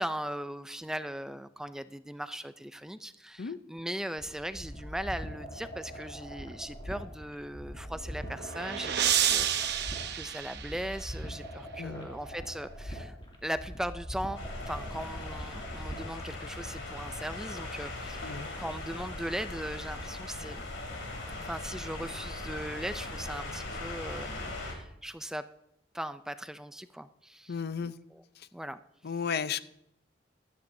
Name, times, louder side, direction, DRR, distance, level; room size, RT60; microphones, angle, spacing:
voice 1, 0.0-20.6 21.4-25.5 25.9-27.5 27.8-28.2 28.5-28.8, right 1 dB, 5° right, 12 dB, 0.3 m, -39 dB
sound 1, 4.2-16.2, equal, 25° left, 2.5 m, -43 dB
sound 2, 7.9-11.3, right 10 dB, 60° right, 0.8 m, -30 dB
voice 2, 11.8-12.1 18.2-18.5 27.5-28.0 28.4-28.5 29.0-29.6, left 6 dB, 55° left, 14 dB, 0.5 m, -34 dB
sound 3, 14.4-24.7, left 2 dB, 90° left, 3.0 m, -39 dB
15.5 x 12.5 x 2.7 m, 0.78 s
head